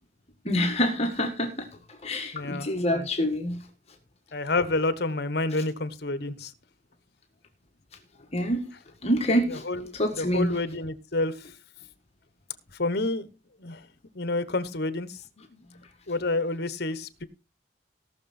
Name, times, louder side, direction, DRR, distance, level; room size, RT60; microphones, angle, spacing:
voice 1, 0.4-3.6 5.5-5.6 8.3-8.7 9.0-9.6 9.9-10.6, equal, 35° left, 1.6 m, -26 dB
voice 2, 2.3-3.1 4.3-6.5 9.5-9.9 10.2-11.3 12.8-13.3 13.6-13.8 14.1-15.2 15.5-15.6 16.1-17.2, left 2 dB, 55° left, 1.1 m, -29 dB
18.0 x 6.4 x 4.3 m
head